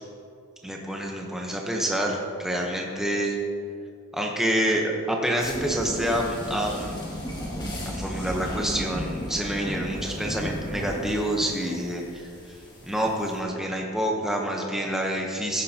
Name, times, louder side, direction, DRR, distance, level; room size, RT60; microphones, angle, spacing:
voice 1, 0.6-3.4 4.1-7.0 7.8-12.3 12.9-15.6, right 1 dB, ahead, -1 dB, 0.9 m, -27 dB
sound 1, 5.4-13.4, equal, 20° left, 2.1 m, -34 dB
15.5 x 10.0 x 2.9 m, 2.4 s
head